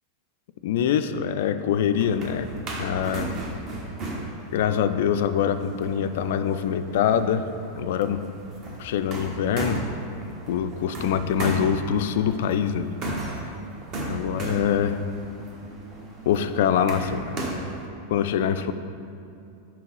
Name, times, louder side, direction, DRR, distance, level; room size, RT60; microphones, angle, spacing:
voice 1, 0.6-2.5 2.8-3.3 4.5-7.5 7.7-8.2 8.8-9.9 10.5-12.9 14.0-15.0 16.3-17.6 18.1-18.7, left 8 dB, 55° left, 10 dB, 0.3 m, -24 dB
sound 1, 1.7-17.9, right 2 dB, 35° right, 1.1 m, -35 dB
5.9 x 4.6 x 5.3 m, 2.7 s
figure-of-eight pair, 90°, 0 cm